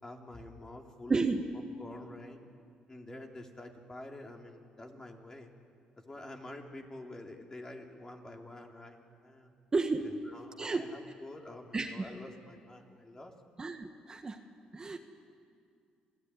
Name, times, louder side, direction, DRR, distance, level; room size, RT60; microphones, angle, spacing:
voice 1, 0.0-1.2 1.8-2.4 2.9-5.5 6.0-9.5 10.0-13.3, left 1 dB, 20° left, 2 dB, 3.2 m, -48 dB
voice 2, 1.1-1.4 9.7-10.1 10.6-10.9 11.7-12.1 13.6-14.4 14.7-15.0, right 3 dB, 25° right, 5 dB, 1.5 m, -31 dB
27.0 x 16.5 x 9.8 m, 2.3 s
cardioid pair, 90°, 3 cm